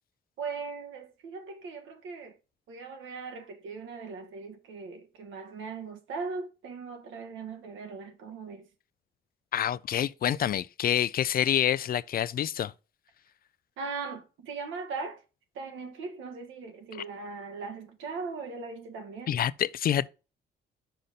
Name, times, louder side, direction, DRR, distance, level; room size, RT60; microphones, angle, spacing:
voice 1, 0.4-2.3 2.7-8.7 13.8-15.2 15.5-19.4, right 4 dB, 80° right, 1.4 m, -39 dB
voice 2, 9.5-12.7 19.3-20.1, left 10 dB, 50° left, 0.4 m, -27 dB
5.6 x 5.0 x 4.0 m
cardioid pair, 90°, 20 cm